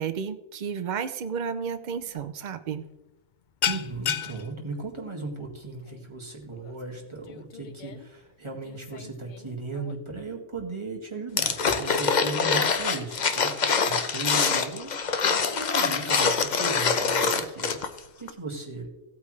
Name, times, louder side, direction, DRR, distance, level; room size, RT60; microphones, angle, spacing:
voice 1, 0.0-2.8, right 7 dB, 80° right, 11 dB, 0.4 m, -32 dB
sound 1, 2.0-2.3 2.5-2.8 3.1-10.0, left 8 dB, 90° left, 0.4 m, -35 dB
voice 2, 3.7-17.8 18.2-18.9, right 3 dB, 20° right, -1 dB, 1.9 m, -37 dB
sound 2, 11.4-18.0 18.3-18.4, left 5 dB, 45° left, 0.6 m, -24 dB
16.0 x 8.4 x 3.2 m, 1.0 s
omnidirectional pair, 1.5 m